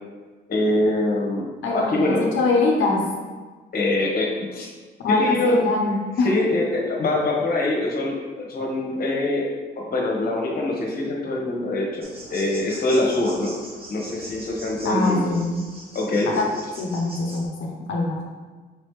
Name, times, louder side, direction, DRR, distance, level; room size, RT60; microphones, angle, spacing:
voice 1, 0.5-2.2 3.7-4.7 5.1-5.6 6.2-9.5 9.7-13.5 13.9-15.3 15.9-16.3, left 2 dB, 50° left, -1 dB, 1.2 m, -24 dB
voice 2, 1.6-3.1 5.0-6.4 14.8-15.6 16.3-16.5 16.8-18.2, left 3 dB, 75° left, -1 dB, 0.7 m, -23 dB
sound 1, 12.0-17.4, right 1 dB, 30° right, 1.1 m, -41 dB
5.0 x 3.2 x 3.1 m, 1.4 s
cardioid pair, 90°, 20 cm